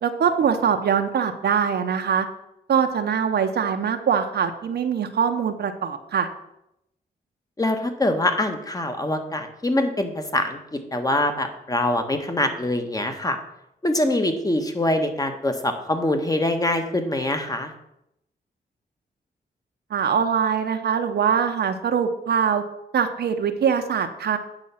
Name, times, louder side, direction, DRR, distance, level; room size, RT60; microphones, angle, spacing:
voice 1, 0.0-2.3 2.7-6.3 19.9-22.6 22.9-24.4, right 7 dB, 75° right, 6 dB, 0.9 m, -23 dB
voice 2, 7.6-10.6 10.9-13.4 13.8-17.7, left 1 dB, 20° left, 6 dB, 1.3 m, -24 dB
8.9 x 5.8 x 5.7 m, 0.82 s
cardioid pair, 85°, 17 cm